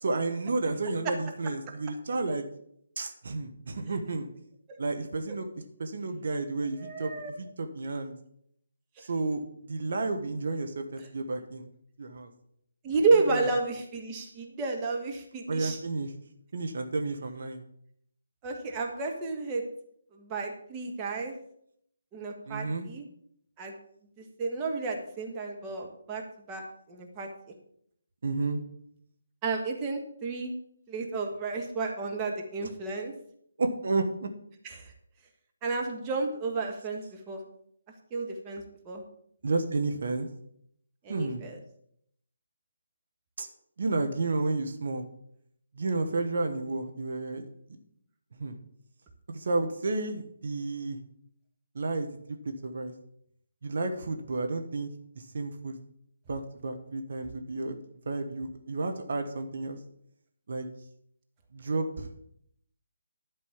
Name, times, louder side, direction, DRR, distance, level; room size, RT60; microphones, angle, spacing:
voice 1, 0.0-2.4 3.0-4.3 4.8-5.5 5.8-7.1 7.4-8.1 9.0-9.4 9.7-11.7 12.0-12.3 13.3-13.5 15.5-16.1 16.5-17.6 22.5-22.9 28.2-28.6 33.6-34.3 39.4-40.3 41.1-41.5 43.4-43.5 43.8-45.0 45.7-47.4 48.3-48.6 49.3-51.0 51.7-52.4 52.6-52.9 53.6-54.9 55.2-55.8 56.3-57.8 58.0-59.8 60.5-60.7 61.5-62.1, right 3 dB, 55° right, 5 dB, 1.4 m, -31 dB
voice 2, 6.8-7.3 12.8-15.8 18.4-19.6 20.1-21.3 22.1-23.0 23.6-23.7 24.2-26.2 26.5-27.5 29.4-30.5 30.9-33.1 34.6-34.9 35.6-37.4 38.1-39.0 41.0-41.6, right 3 dB, 20° right, 1 dB, 1.5 m, -31 dB
11.5 x 5.3 x 7.2 m, 0.70 s
figure-of-eight pair, 150°, 0 cm